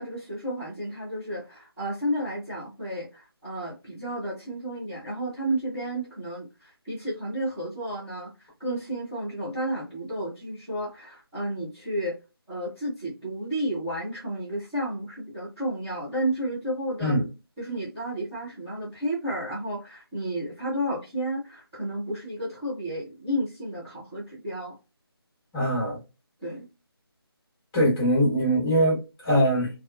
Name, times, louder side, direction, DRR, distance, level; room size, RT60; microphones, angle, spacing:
voice 1, 0.0-8.3 8.6-12.1 12.5-17.2 17.6-24.8 26.4-26.7, right 1 dB, 10° right, 0.5 m, -32 dB
voice 2, 25.5-26.0 27.7-29.7, equal, 10° left, 0.9 m, -22 dB
2.5 x 2.2 x 2.3 m
figure-of-eight pair, 165°, 13 cm